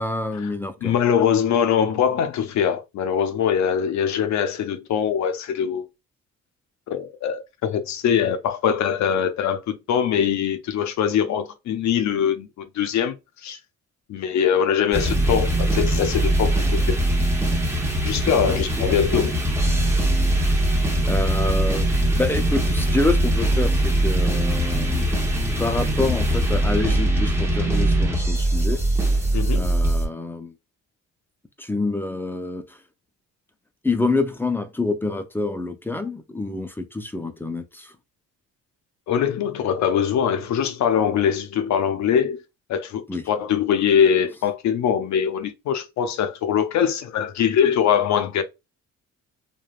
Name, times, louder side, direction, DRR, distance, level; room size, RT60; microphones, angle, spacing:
voice 1, 0.0-1.0 18.4-19.0 20.6-20.7 21.1-21.9 22.1-25.1 25.6-28.8 29.5-30.5 31.6-32.8 33.8-37.9 43.1-43.2, left 2 dB, 5° left, 0.4 m, -27 dB
voice 2, 0.8-5.8 6.9-13.6 14.1-16.6 16.9-17.0 18.0-19.4 29.3-29.7 39.1-42.4 42.7-48.4, left 8 dB, 65° left, 0.5 m, -22 dB
sound 1, 14.9-30.1, right 1 dB, 10° right, 0.8 m, -21 dB
3.2 x 2.2 x 2.3 m
cardioid pair, 90°, 30 cm